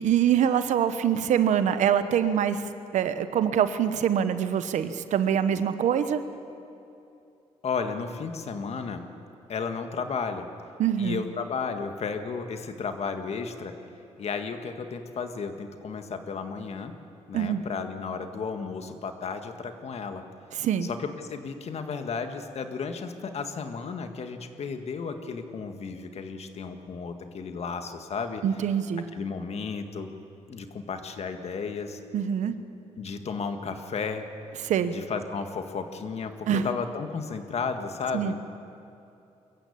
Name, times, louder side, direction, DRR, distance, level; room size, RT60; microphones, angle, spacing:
voice 1, 0.0-2.6 2.9-6.2 10.8-11.2 17.3-17.6 20.6-20.9 28.4-29.0 32.1-32.5 34.6-34.9 36.5-36.7 38.1-38.3, right 9 dB, 85° right, 11 dB, 1.1 m, -24 dB
voice 2, 7.6-9.1 9.5-10.5 11.0-13.8 14.2-16.9 17.3-20.3 20.8-28.4 29.1-30.1 30.5-32.0 33.0-34.3 34.6-38.3, left 5 dB, 60° left, 7 dB, 1.8 m, -33 dB
23.5 x 14.5 x 8.6 m, 2.7 s
cardioid pair, 85°, 12 cm